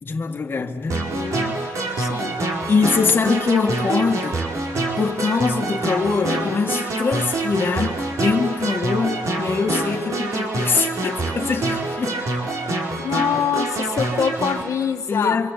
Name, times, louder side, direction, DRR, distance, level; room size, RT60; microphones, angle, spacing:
voice 1, 0.0-1.0 2.0-2.2 2.7-4.4 5.0-12.5 15.1-15.5, left 5 dB, 40° left, 1.8 m, -23 dB
voice 2, 0.9-1.6 2.0-2.4 13.0-15.4, left 7 dB, 70° left, 1.7 m, -25 dB
sound 1, 0.9-14.6, right 2 dB, 65° right, 4.9 m, -26 dB
26.0 x 26.0 x 8.2 m
wide cardioid pair, 135°, 6 cm